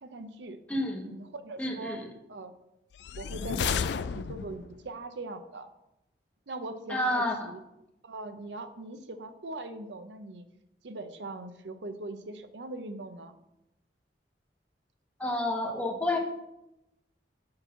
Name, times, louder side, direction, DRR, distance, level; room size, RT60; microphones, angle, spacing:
voice 1, 0.0-0.6 1.0-2.0 2.3-2.5 3.2-5.7 6.5-7.6 8.0-10.4 10.8-13.3, right 2 dB, 85° right, 9 dB, 0.7 m, -41 dB
voice 2, 0.7-1.1 1.6-2.0 6.9-7.5 15.2-16.2, left 1 dB, 10° left, -1 dB, 1.3 m, -29 dB
sound 1, 3.0-4.8, left 6 dB, 70° left, 0.4 m, -32 dB
6.7 x 4.5 x 6.7 m, 0.88 s
head